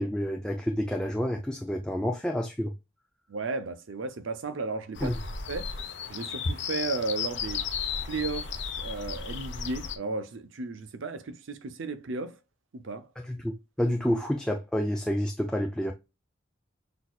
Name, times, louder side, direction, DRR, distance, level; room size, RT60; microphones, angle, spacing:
voice 1, 0.0-2.7 5.0-5.2 13.3-13.5 13.8-15.9, equal, 5° left, 0.4 m, -29 dB
voice 2, 3.3-5.2 5.5-5.7 6.1-7.7 8.0-12.4 12.7-13.1, right 3 dB, 75° right, 0.6 m, -34 dB
sound 1, 5.0-10.0, left 5 dB, 60° left, 0.7 m, -34 dB
6.1 x 2.7 x 2.3 m
head